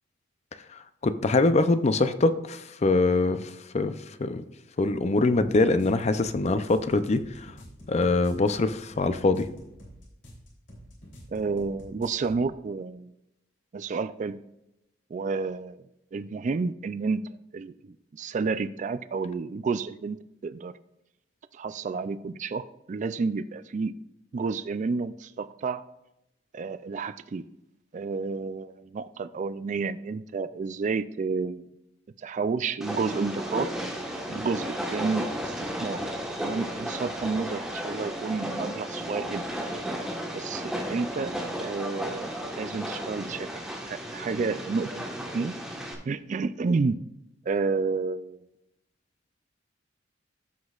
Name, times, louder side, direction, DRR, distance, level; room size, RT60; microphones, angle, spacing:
voice 1, 1.0-4.4 4.8-7.5 7.9-9.5, left 3 dB, 35° left, 11 dB, 0.5 m, -23 dB
sound 1, 5.3-12.4, equal, 70° left, 3.2 m, -48 dB
voice 2, 11.3-13.1 13.7-14.4 15.1-15.8 16.1-17.2 17.5-20.2 20.4-20.7 21.5-23.9 24.3-25.8 26.5-27.5 27.9-31.7 32.2-33.7 34.0-36.0 36.4-39.4 40.3-41.3 41.6-45.1 45.3-45.5 46.1-47.0 47.5-48.4, right 4 dB, 40° right, 13 dB, 0.3 m, -30 dB
Train, 32.8-45.9, equal, 5° right, 1.3 m, -34 dB
14.5 x 6.1 x 2.4 m, 0.88 s
head